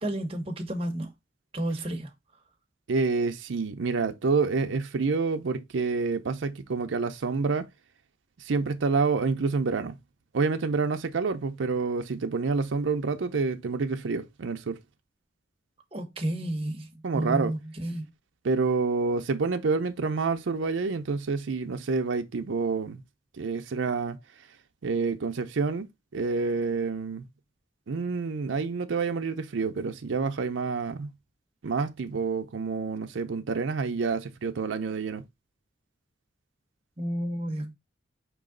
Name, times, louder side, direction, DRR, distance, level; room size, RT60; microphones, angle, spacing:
voice 1, 0.0-1.1 1.5-2.1 15.9-18.1 37.0-37.7, right 1 dB, 30° right, 0.8 m, -31 dB
voice 2, 2.9-7.7 8.4-10.0 10.3-14.8 17.0-17.5 18.4-23.0 23.4-24.2 24.8-25.9 26.1-27.2 27.9-31.1 31.6-35.2, right 4 dB, 85° right, 0.5 m, -28 dB
4.7 x 3.1 x 3.7 m
head